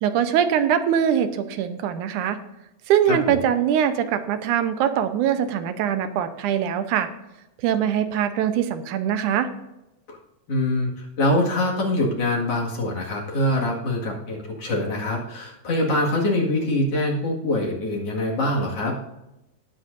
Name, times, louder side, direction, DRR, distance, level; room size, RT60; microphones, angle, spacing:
voice 1, 0.0-2.4 2.9-7.1 7.6-9.5, right 9 dB, 75° right, 9 dB, 2.2 m, -22 dB
voice 2, 3.1-3.4 10.1-10.2 10.5-18.9, left 1 dB, 50° left, -2 dB, 2.8 m, -24 dB
19.0 x 7.8 x 2.6 m, 0.94 s
omnidirectional pair, 3.7 m